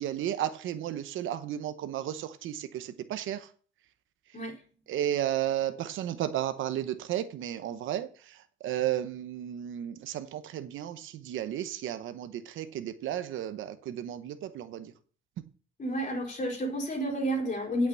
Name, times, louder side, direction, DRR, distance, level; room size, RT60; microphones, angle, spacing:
voice 1, 0.0-3.5 4.9-14.9, right 11 dB, 80° right, 0.9 m, -33 dB
voice 2, 15.8-17.9, equal, 40° left, 4.2 m, -30 dB
8.5 x 6.1 x 8.0 m
cardioid pair, 90°, 20 cm